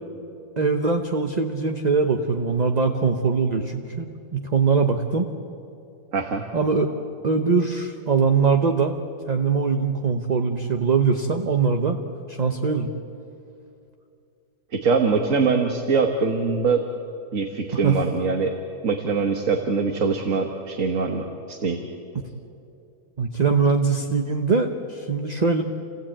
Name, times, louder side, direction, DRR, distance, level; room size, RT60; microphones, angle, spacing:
voice 1, 0.6-5.3 6.5-6.9 7.2-9.0 9.3-12.0 12.3-12.9 17.8-18.0 23.2-25.6, right 5 dB, 30° right, 5 dB, 0.9 m, -22 dB
voice 2, 6.1-6.4 14.7-16.8 17.3-18.5 18.8-21.8, right 4 dB, 55° right, 3 dB, 1.7 m, -23 dB
29.5 x 16.0 x 8.8 m, 2.6 s
omnidirectional pair, 1.6 m